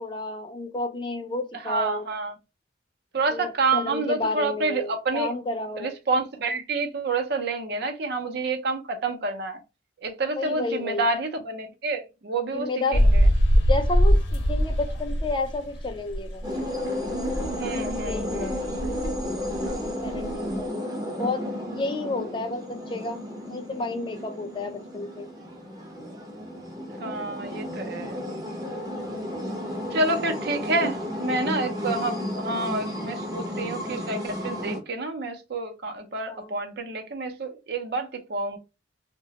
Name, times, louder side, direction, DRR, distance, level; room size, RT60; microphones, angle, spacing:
voice 1, 0.0-2.0 3.3-5.9 10.4-11.1 12.5-13.0 13.7-16.4 17.8-18.6 20.0-20.9 21.2-23.2 23.5-25.3 29.9-30.1 36.3-36.5, left 2 dB, 25° left, 0.4 m, -31 dB
voice 2, 1.6-2.3 3.1-5.3 5.8-9.6 10.0-13.3 17.5-18.6 27.0-28.2 29.9-38.6, right 3 dB, 60° right, 0.6 m, -28 dB
sound 1, 12.9-16.8 17.0-20.5, equal, 70° left, 0.7 m, -22 dB
sound 2, 16.4-34.8, left 1 dB, 20° right, 0.6 m, -33 dB
2.9 x 2.2 x 2.8 m
head